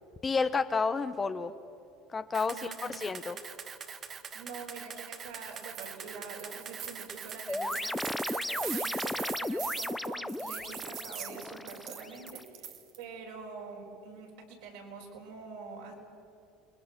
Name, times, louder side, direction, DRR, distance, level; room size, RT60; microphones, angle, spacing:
voice 1, 0.2-1.5 2.1-3.4, left 4 dB, 25° left, 11 dB, 1.1 m, -30 dB
Camera, 2.3-9.3, right 7 dB, 40° right, 1.3 m, -44 dB
voice 2, 2.5-2.9 4.0-15.9, right 4 dB, 75° right, -1 dB, 5.2 m, -46 dB
sound 1, 5.4-5.9 6.3-13.0, right 9 dB, 55° right, 1.9 m, -42 dB
sound 2, 7.5-12.4, left 1 dB, 10° left, 0.6 m, -35 dB
29.0 x 21.0 x 6.1 m, 2.6 s
hypercardioid pair, 80°, 0 cm